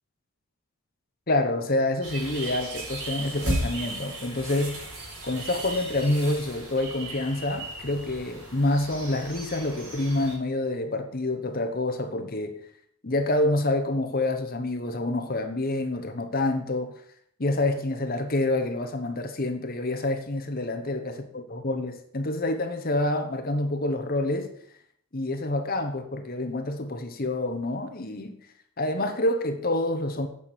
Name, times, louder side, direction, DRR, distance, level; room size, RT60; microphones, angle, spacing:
voice 1, 1.3-4.8 5.2-12.5 13.0-17.0 17.4-24.5 25.1-28.4 28.8-30.3, left 2 dB, 40° left, 1.0 m, -27 dB
sound 1, 2.0-10.4, right 2 dB, 90° right, 4.2 m, -36 dB
8.8 x 6.3 x 6.9 m
head